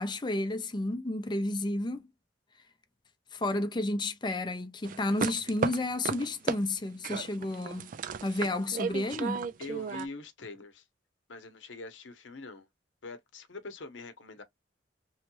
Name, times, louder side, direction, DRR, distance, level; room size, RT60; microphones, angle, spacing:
voice 1, 0.0-2.0 3.3-7.9 8.2-9.4, left 2 dB, 25° left, 0.5 m, -31 dB
sound 1, 4.8-6.6 7.0-10.1, right 6 dB, 45° right, 0.3 m, -34 dB
voice 2, 9.6-10.8 11.3-12.7 13.0-14.4, left 3 dB, 90° left, 0.8 m, -44 dB
3.1 x 2.2 x 3.0 m
head